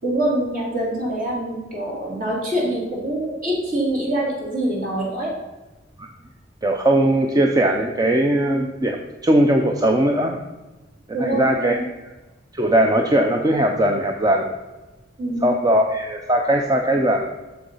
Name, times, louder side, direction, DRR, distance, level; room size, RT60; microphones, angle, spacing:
voice 1, 0.0-5.3 11.1-11.8 15.2-15.5, right 1 dB, 45° right, -3 dB, 3.1 m, -25 dB
voice 2, 6.6-9.0 9.2-10.4 11.2-11.8 12.5-14.5 15.4-17.3, right 1 dB, 20° right, 3 dB, 0.6 m, -19 dB
7.0 x 6.9 x 5.5 m, 1.1 s
head